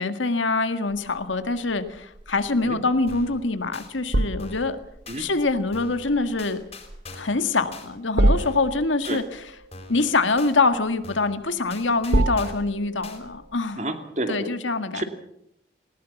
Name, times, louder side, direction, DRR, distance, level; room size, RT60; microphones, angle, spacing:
voice 1, 0.0-4.8 5.2-6.6 7.1-9.2 9.9-13.8 14.3-15.0, left 3 dB, 90° left, 9 dB, 1.8 m, -24 dB
sound 1, 0.9-13.6, right 1 dB, 65° right, 1.3 m, -29 dB
sound 2, 3.1-3.4 3.7-3.9 4.4-4.7 5.1-5.2 5.7-6.0 6.4-7.4 7.7-7.9 8.4-8.7 9.0-9.2 9.7-10.0 10.4-10.5 11.0-11.4 11.7-12.7 13.0-13.2, left 3 dB, 35° left, 4.2 m, -42 dB
voice 2, 13.8-14.5 14.9-15.0, right 1 dB, 40° right, 6 dB, 2.5 m, -29 dB
19.5 x 19.5 x 7.2 m, 0.74 s
head